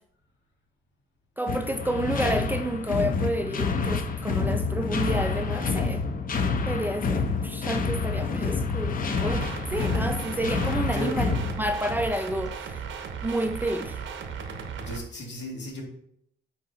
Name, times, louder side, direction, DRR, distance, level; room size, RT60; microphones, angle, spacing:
voice 1, 1.4-6.0 6.7-11.3 11.6-12.8 13.2-14.0, right 1 dB, 10° right, 7 dB, 0.4 m, -30 dB
sound 1, 1.5-12.2, left 4 dB, 45° left, 0.7 m, -28 dB
sound 2, 9.2-15.0, right 6 dB, 75° right, 0.8 m, -36 dB
voice 2, 14.8-15.8, left 1 dB, 65° left, -2 dB, 2.1 m, -34 dB
8.3 x 2.9 x 3.8 m, 0.72 s
cardioid pair, 90°, 20 cm